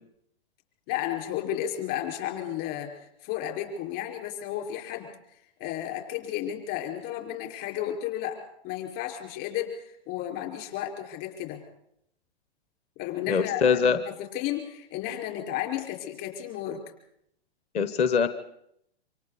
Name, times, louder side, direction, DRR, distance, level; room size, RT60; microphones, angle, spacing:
voice 1, 0.9-5.1 5.6-8.4 8.6-11.6 13.0-16.8, left 11 dB, 35° left, 2 dB, 5.1 m, -33 dB
voice 2, 13.3-14.0 17.7-18.3, left 6 dB, 20° left, 11 dB, 1.0 m, -23 dB
27.5 x 26.0 x 4.1 m, 0.74 s
hypercardioid pair, 130°, 33 cm